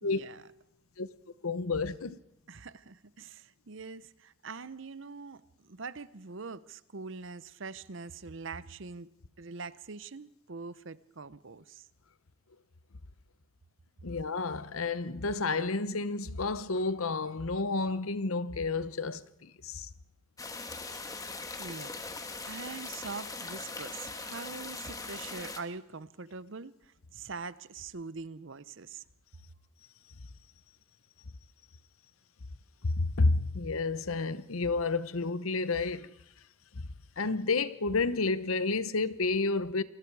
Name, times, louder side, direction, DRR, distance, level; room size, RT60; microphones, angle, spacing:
voice 1, 0.0-0.5 2.5-11.9 21.6-21.9 22.5-29.0, right 4 dB, 60° right, 0.8 m, -43 dB
voice 2, 1.4-2.2 14.0-19.9 32.8-36.1 36.8-36.9 37.2-39.8, left 3 dB, 80° left, 1.0 m, -30 dB
sound 1, 20.4-25.6, left 3 dB, 15° left, 1.6 m, -40 dB
27.5 x 20.5 x 4.8 m
head